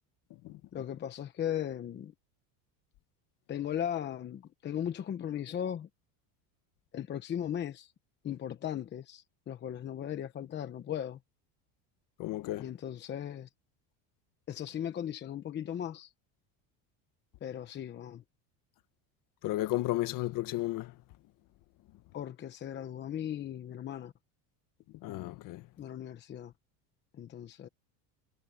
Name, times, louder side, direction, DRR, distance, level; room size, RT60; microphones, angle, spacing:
voice 1, 0.7-2.1 3.5-5.9 6.9-7.9 8.2-11.2 12.6-13.5 14.5-16.1 17.4-18.2 22.1-24.1 25.8-26.5 27.1-27.7, left 10 dB, 25° left, 1.0 m, -37 dB
voice 2, 12.2-12.7 19.4-20.9 25.0-25.6, left 16 dB, 50° left, 1.7 m, -33 dB
cardioid pair, 155°, 41 cm